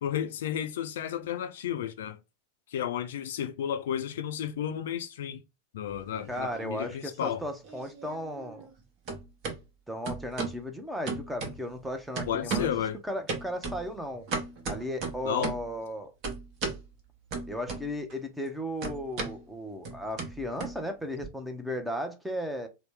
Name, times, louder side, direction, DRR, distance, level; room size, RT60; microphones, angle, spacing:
voice 1, 0.0-2.2 2.7-5.4 5.7-7.4 12.3-13.0 15.2-15.5, left 9 dB, 60° left, 0.4 m, -32 dB
sound 1, 5.9-6.9 7.2-8.8 9.1-9.6 10.1-10.6 11.1-11.9 12.2-12.8 13.3-15.7 16.2-16.8 17.3-18.1 18.4-21.3, right 4 dB, 40° right, 1.0 m, -36 dB
voice 2, 6.3-8.7 9.9-12.7 13.0-14.2 14.7-16.1 17.5-22.7, equal, 5° right, 0.7 m, -35 dB
4.0 x 2.1 x 3.2 m
figure-of-eight pair, 90°, 0 cm